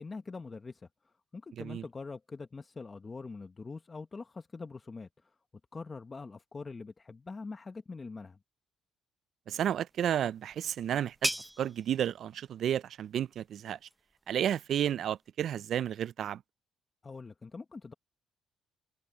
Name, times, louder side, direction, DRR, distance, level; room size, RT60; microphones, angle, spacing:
voice 1, 0.0-5.4 5.7-8.4 17.0-17.9, left 4 dB, 30° left, 1.1 m, -44 dB
voice 2, 9.5-11.3 11.6-13.8 14.3-16.4, right 10 dB, 70° right, 0.3 m, -32 dB
sound 1, 9.9-15.3, right 1 dB, 5° right, 0.7 m, -41 dB
cardioid pair, 90°, 0 cm